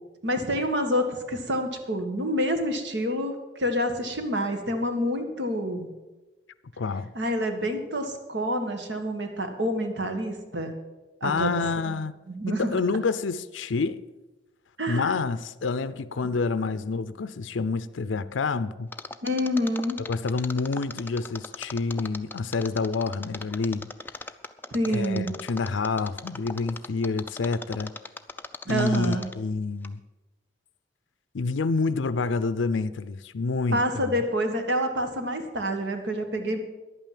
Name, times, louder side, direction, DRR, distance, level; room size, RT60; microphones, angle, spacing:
voice 1, 0.2-5.9 7.2-10.7 11.2-12.0 12.3-12.7 14.8-15.2 19.2-20.0 24.7-25.4 28.7-29.3 33.7-36.6, equal, 70° right, 1.7 m, -27 dB
voice 2, 6.8-7.1 11.2-12.1 12.5-14.0 14.9-18.9 20.1-23.9 24.9-27.9 28.7-30.0 31.3-33.8, left 4 dB, 85° left, 0.5 m, -28 dB
Mechanisms, 18.9-29.5 29.8-29.9, left 3 dB, 10° left, 0.4 m, -38 dB
11.0 x 9.0 x 7.6 m
head